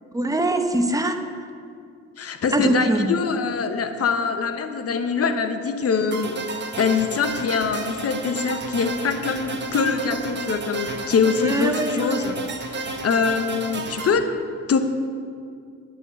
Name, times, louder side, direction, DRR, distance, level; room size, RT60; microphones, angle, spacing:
voice 1, 0.1-1.2 2.5-3.2 11.4-12.3, right 1 dB, 10° right, 6 dB, 0.9 m, -22 dB
voice 2, 2.2-6.4 6.8-14.2 14.7-14.8, left 5 dB, 50° left, 8 dB, 1.1 m, -24 dB
sound 1, 6.1-14.1, right 3 dB, 35° right, 1.3 m, -32 dB
10.5 x 6.2 x 8.2 m, 2.4 s
cardioid pair, 90°, 30 cm